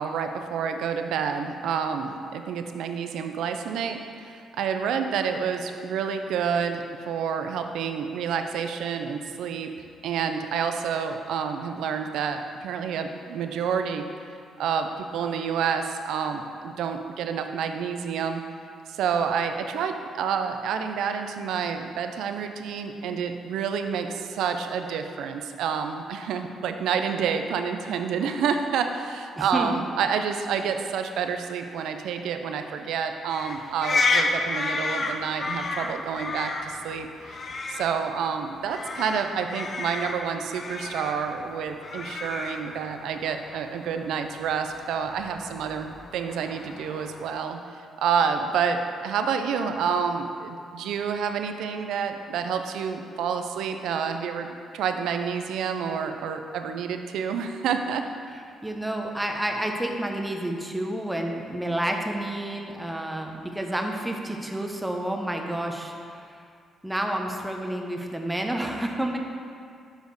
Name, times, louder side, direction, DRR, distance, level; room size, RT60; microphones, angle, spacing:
voice 1, 0.0-9.7 10.0-14.0 14.6-18.4 18.9-37.1 37.7-47.6 48.0-58.0, right 6 dB, 80° right, 6 dB, 0.4 m, -28 dB
voice 2, 29.4-29.8 58.6-66.4 66.8-69.2, right 1 dB, 5° right, 2 dB, 0.7 m, -30 dB
sound 1, 33.3-47.4, left 3 dB, 40° left, 0.5 m, -32 dB
6.3 x 5.0 x 4.0 m, 2.4 s
cardioid pair, 90°, 0 cm